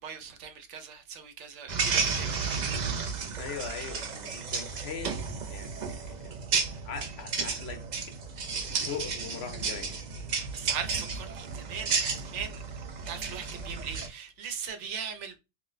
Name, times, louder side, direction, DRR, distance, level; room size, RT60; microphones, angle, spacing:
voice 1, 0.0-2.5 10.5-12.6 13.1-15.4, right 7 dB, 75° right, 0.9 m, -39 dB
sound 1, 1.7-14.1, right 5 dB, 55° right, 0.5 m, -32 dB
voice 2, 3.4-5.2 5.5-6.3 6.9-7.8 8.7-9.9, left 6 dB, 65° left, 0.8 m, -40 dB
2.4 x 2.1 x 3.8 m
omnidirectional pair, 1.3 m